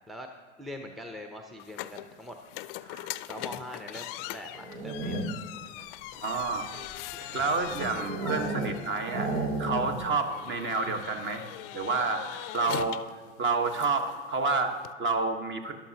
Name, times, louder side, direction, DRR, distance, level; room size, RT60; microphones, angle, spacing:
voice 1, 0.6-2.4 3.3-5.2 10.3-10.4, left 1 dB, ahead, 3 dB, 0.6 m, -42 dB
sound 1, 1.6-14.9, left 16 dB, 55° left, 0.4 m, -42 dB
sound 2, 3.6-6.4 6.7-6.9 7.2-7.5 7.8-8.1 8.4-8.6, right 4 dB, 50° right, 1.5 m, -52 dB
sound 3, 4.5-5.6 6.2-8.8 9.1-10.2 10.4-10.5 10.8-11.2, right 2 dB, 75° right, 1.4 m, -33 dB
voice 2, 6.2-6.7 7.1-9.3 9.6-11.5 11.7-13.0 13.4-15.7, right 3 dB, 35° right, 6 dB, 1.2 m, -29 dB
12.5 x 11.5 x 2.8 m, 1.4 s
hypercardioid pair, 85°, 35 cm